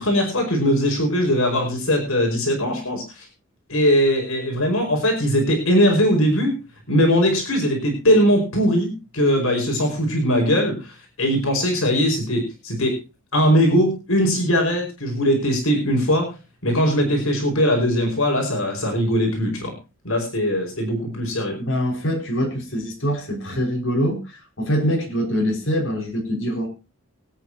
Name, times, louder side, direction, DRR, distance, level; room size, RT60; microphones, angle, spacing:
voice 1, 0.0-3.3 3.7-6.5 6.9-13.0 13.3-16.3 16.6-19.7 20.0-21.6, equal, 80° left, 2 dB, 5.2 m, -20 dB
voice 2, 21.6-26.7, equal, 65° left, 0 dB, 5.4 m, -24 dB
24.0 x 9.0 x 2.8 m, 0.29 s
head